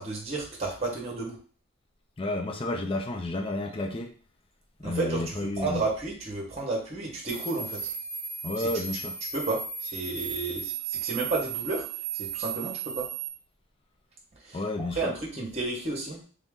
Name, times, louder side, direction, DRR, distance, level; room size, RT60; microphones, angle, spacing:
voice 1, 0.0-1.4 4.8-7.8 8.6-8.8 9.3-11.8 12.1-13.0 14.4-16.3, right 3 dB, 30° right, -1 dB, 1.1 m, -32 dB
voice 2, 2.2-4.1 4.8-5.8 8.4-9.2 14.5-15.1, left 2 dB, 25° left, 4 dB, 0.4 m, -31 dB
sound 1, 7.3-13.3, right 7 dB, 90° right, 0.6 m, -35 dB
3.5 x 2.7 x 3.6 m, 0.41 s
head